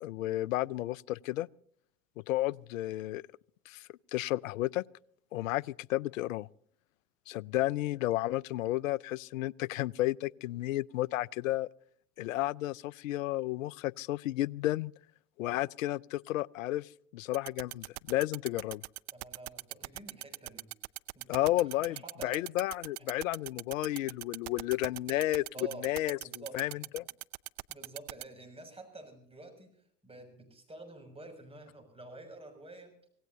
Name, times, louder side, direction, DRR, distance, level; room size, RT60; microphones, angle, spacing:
voice 1, 0.0-1.5 2.3-3.2 3.7-3.8 4.1-4.8 5.3-6.5 7.3-11.7 12.2-14.9 15.4-18.8 21.3-25.4 25.8-26.2 26.5-27.0, left 16 dB, 80° left, 0.5 m, -32 dB
sound 1, 17.3-28.2, right 24 dB, 65° right, 0.7 m, -40 dB
voice 2, 19.1-20.7 21.1-22.5 23.0-23.1 25.5-25.9 26.2-26.6 27.7-33.0, right 2 dB, 15° right, 6.6 m, -49 dB
26.5 x 17.5 x 2.7 m
hypercardioid pair, 75°, 40 cm